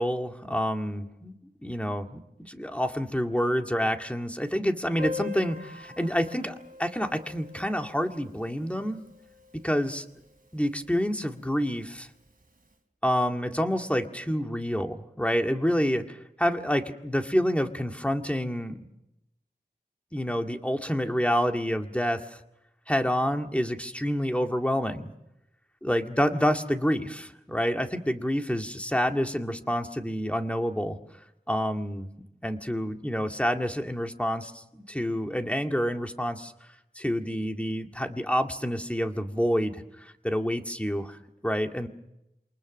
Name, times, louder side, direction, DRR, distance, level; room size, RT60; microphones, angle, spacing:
voice 1, 0.0-1.3 1.6-9.0 9.6-10.1 10.5-12.1 13.0-18.9 20.1-22.4 22.9-25.1 25.8-31.0 31.5-32.1 32.4-36.5 37.0-41.9, equal, 5° left, 4 dB, 2.0 m, -28 dB
Piano, 5.0-10.3 10.6-10.7 10.9-11.1 11.4-11.5 12.3-12.4, left 4 dB, 55° right, 3.9 m, -42 dB
28.0 x 23.5 x 6.5 m, 0.87 s
wide cardioid pair, 55°, 17 cm